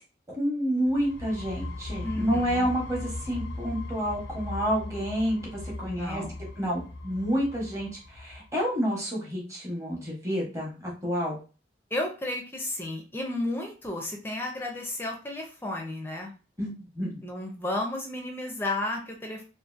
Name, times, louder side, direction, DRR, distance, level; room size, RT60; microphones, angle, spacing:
voice 1, 0.3-6.2 6.6-11.4 16.6-17.2, equal, 15° right, -3 dB, 0.9 m, -29 dB
sound 1, 0.9-8.5, left 1 dB, 70° left, 0.5 m, -38 dB
voice 2, 2.0-2.7 5.9-6.4 11.9-16.3 17.2-19.4, left 1 dB, 10° left, 1 dB, 0.5 m, -33 dB
2.7 x 2.5 x 2.4 m, 0.34 s
head